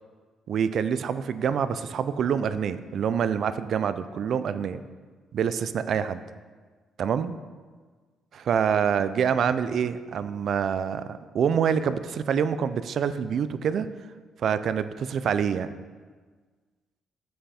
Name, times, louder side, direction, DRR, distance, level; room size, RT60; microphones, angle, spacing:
voice 1, 0.5-4.8 5.3-6.2 7.0-7.4 8.3-13.9 14.4-15.7, right 7 dB, 65° right, 13 dB, 0.4 m, -26 dB
7.6 x 5.6 x 4.2 m, 1.5 s
cardioid pair, 90°, 0 cm